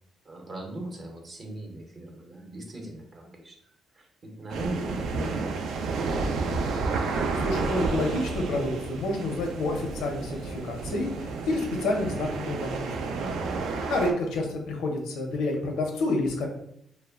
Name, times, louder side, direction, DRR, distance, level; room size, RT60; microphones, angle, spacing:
voice 1, 0.2-3.6 3.9-4.1 4.4-6.2 13.2-13.6, right 1 dB, 45° right, 1 dB, 0.7 m, -39 dB
sound 1, 4.5-14.1, right 4 dB, 80° right, 0.3 m, -31 dB
voice 2, 7.3-13.2 13.9-16.5, left 2 dB, 90° left, 2 dB, 0.5 m, -29 dB
2.1 x 2.0 x 3.5 m, 0.73 s
cardioid pair, 90°, 0 cm